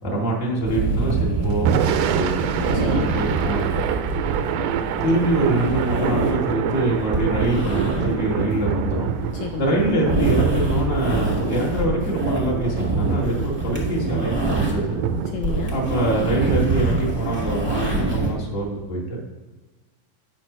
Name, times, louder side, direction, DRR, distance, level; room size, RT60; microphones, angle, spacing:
voice 1, 0.0-3.7 5.0-9.1 9.6-15.0 15.7-19.2, right 1 dB, 20° left, -3 dB, 1.6 m, -24 dB
sound 1, 0.6-15.0 15.3-18.3, right 3 dB, 5° right, 0.8 m, -25 dB
Thunder / Rain, 1.5-17.8, right 8 dB, 85° right, 2.3 m, -27 dB
voice 2, 2.6-3.3 9.4-9.8 15.1-15.7, left 10 dB, 85° left, 3 dB, 1.7 m, -31 dB
8.8 x 4.9 x 6.0 m, 1.3 s
omnidirectional pair, 4.0 m